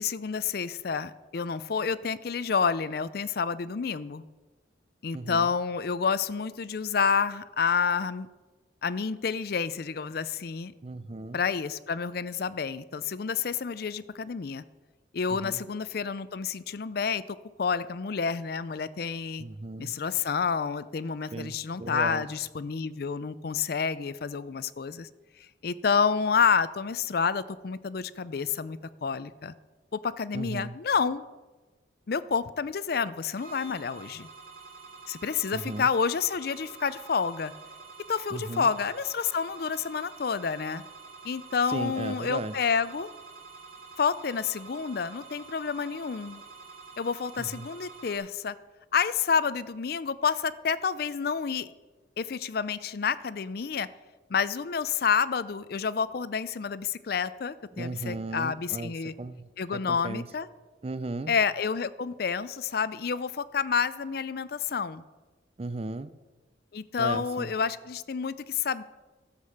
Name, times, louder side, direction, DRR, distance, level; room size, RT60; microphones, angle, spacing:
voice 1, 0.0-4.2 5.0-8.3 8.8-10.7 11.3-14.6 15.1-19.4 19.8-25.1 25.6-29.5 29.9-31.2 32.1-34.3 35.1-37.5 38.1-40.8 41.2-43.1 44.0-46.4 47.0-48.6 48.9-51.7 52.2-53.9 54.3-59.1 59.6-60.5 61.3-65.0 66.7-68.8, left 6 dB, 55° left, 16 dB, 0.4 m, -29 dB
voice 2, 5.1-5.5 10.8-11.4 15.3-15.6 19.4-20.0 21.3-22.2 30.3-30.8 35.5-35.9 38.3-38.7 41.7-42.5 47.4-47.7 57.7-60.3 60.8-61.3 65.6-66.1 67.0-67.5, right 2 dB, 30° right, 14 dB, 0.4 m, -36 dB
sound 1, 33.4-48.2, right 4 dB, 50° right, 2.8 m, -48 dB
13.0 x 7.5 x 6.5 m, 1.2 s
head